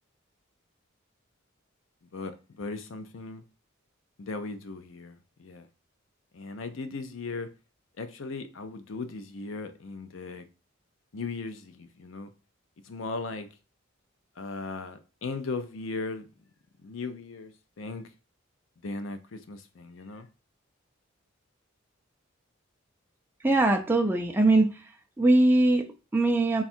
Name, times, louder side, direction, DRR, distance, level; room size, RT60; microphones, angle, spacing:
voice 1, 2.1-3.4 4.2-5.7 6.3-7.5 8.0-10.4 11.1-12.3 12.8-13.5 14.4-16.3 16.8-17.5 17.8-18.1 18.8-20.3, left 3 dB, 70° left, 0.5 m, -37 dB
voice 2, 23.4-24.9 25.2-26.6, right 2 dB, 10° right, 0.3 m, -22 dB
3.5 x 2.3 x 4.3 m
head